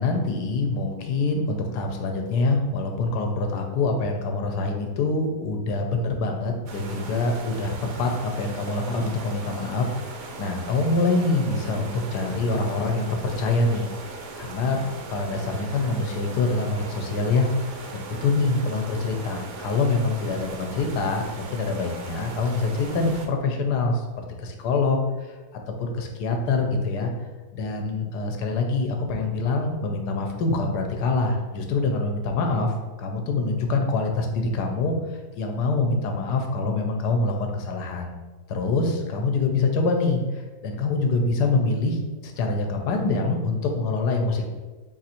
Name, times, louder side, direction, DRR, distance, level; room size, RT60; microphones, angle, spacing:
voice 1, 0.0-13.9 14.4-14.8 15.1-17.5 17.9-25.0 25.8-27.1 27.5-34.9 35.4-38.1 38.5-44.5, left 3 dB, 85° left, 3 dB, 1.3 m, -25 dB
sound 1, 6.7-23.3, right 3 dB, 65° right, 0.8 m, -39 dB
4.4 x 2.5 x 4.2 m, 1.3 s
omnidirectional pair, 1.8 m